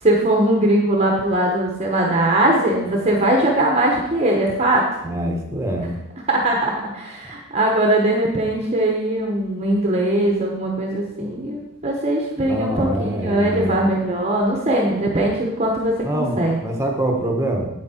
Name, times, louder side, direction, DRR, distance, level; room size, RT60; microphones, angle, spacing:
voice 1, 0.0-4.9 6.3-16.6, right 1 dB, 30° right, 0 dB, 1.2 m, -20 dB
voice 2, 5.0-5.9 12.4-13.9 16.0-17.7, right 1 dB, 15° right, 1 dB, 1.5 m, -24 dB
8.6 x 8.5 x 4.4 m, 0.90 s
head